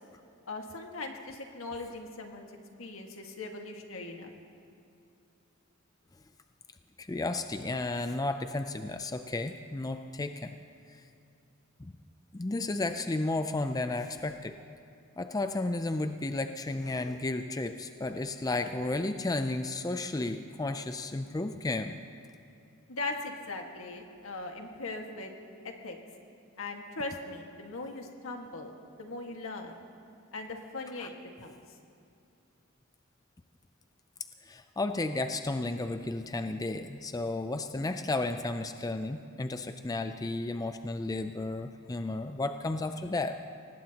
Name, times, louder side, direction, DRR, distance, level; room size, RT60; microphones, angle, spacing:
voice 1, 0.5-2.4 2.8-4.3 22.9-25.3 25.6-26.0 26.6-29.8 30.3-31.1 31.4-31.6, left 2 dB, 80° left, 3 dB, 1.7 m, -39 dB
voice 2, 7.0-10.5 11.8-11.9 12.3-14.5 15.2-22.0 31.0-31.1 34.5-43.3, left 2 dB, 20° left, 8 dB, 0.4 m, -33 dB
24.0 x 19.0 x 2.9 m, 2.6 s
head